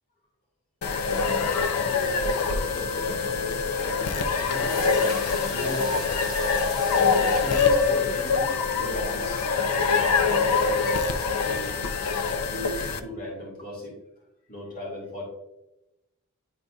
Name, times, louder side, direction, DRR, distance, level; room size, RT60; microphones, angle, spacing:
sound 1, 0.8-13.0, left 5 dB, 85° left, 0.6 m, -24 dB
voice 1, 1.7-6.1 6.5-6.8 7.4-11.8 12.4-14.0 14.5-15.2, left 1 dB, 40° left, -4 dB, 2.1 m, -38 dB
sound 2, 4.5-9.0, equal, 20° left, 2.3 m, -42 dB
10.5 x 4.0 x 2.3 m, 0.93 s
head